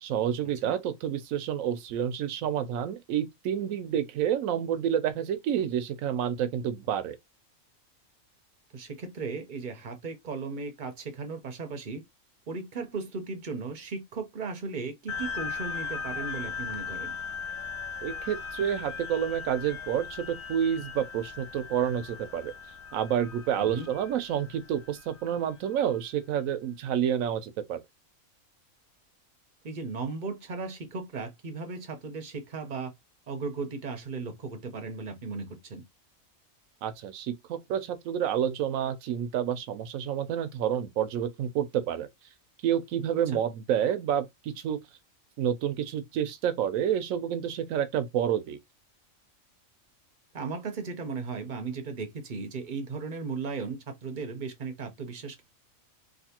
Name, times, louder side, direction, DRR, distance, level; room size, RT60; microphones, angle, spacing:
voice 1, 0.0-7.2 18.0-22.5 22.9-27.8 36.8-42.1 42.6-44.8 45.4-48.6, right 9 dB, 75° right, 1.0 m, -29 dB
voice 2, 8.7-12.0 12.5-17.1 23.6-23.9 29.6-32.9 33.3-35.8 43.3-43.4 50.3-55.4, right 4 dB, 45° right, 0.7 m, -36 dB
sound 1, 15.1-26.0, left 6 dB, 75° left, 1.0 m, -38 dB
3.3 x 2.6 x 2.8 m
omnidirectional pair, 1.4 m